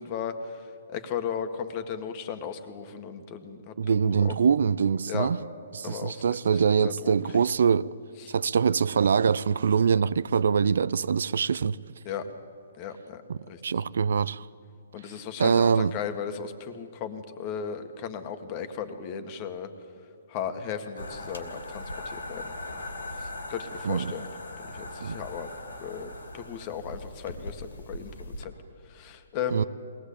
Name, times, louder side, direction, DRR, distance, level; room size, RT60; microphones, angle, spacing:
voice 1, 0.0-4.3 5.1-5.3 5.8-7.4 8.2-8.3 12.1-12.3 12.7-13.2 13.5-13.6 14.9-19.7 20.3-22.5 23.1-24.3 24.6-25.5 25.8-28.5 28.8-29.7, left 7 dB, 35° left, 1.7 m, -36 dB
voice 2, 3.8-5.4 5.7-8.0 8.3-11.8 13.6-14.4 15.4-15.9 23.8-24.1 25.0-25.2 29.5-29.6, right 6 dB, 70° right, 0.5 m, -24 dB
sound 1, 21.0-28.4, left 2 dB, 90° left, 2.9 m, -39 dB
22.0 x 18.5 x 8.6 m
hypercardioid pair, 140°, 0 cm